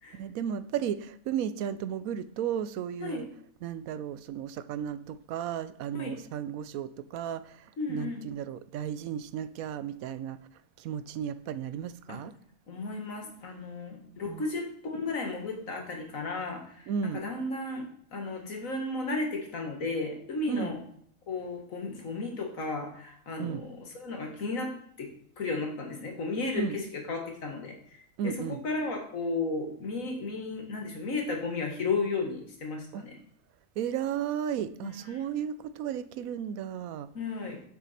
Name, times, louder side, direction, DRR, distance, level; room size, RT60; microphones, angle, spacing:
voice 1, 0.1-3.3 3.6-10.4 10.8-12.3 14.3-14.5 16.9-17.2 20.5-20.7 23.4-23.6 26.5-26.8 28.2-28.6 32.9-33.0 33.8-37.1, right 9 dB, 90° right, 1.0 m, -34 dB
voice 2, 3.0-3.3 5.9-6.1 7.8-8.2 12.1-12.2 12.7-20.8 21.3-25.1 25.4-28.0 28.2-33.1 34.8-35.2 37.1-37.6, left 3 dB, 75° left, 2.0 m, -34 dB
8.1 x 6.5 x 4.2 m
omnidirectional pair, 1.4 m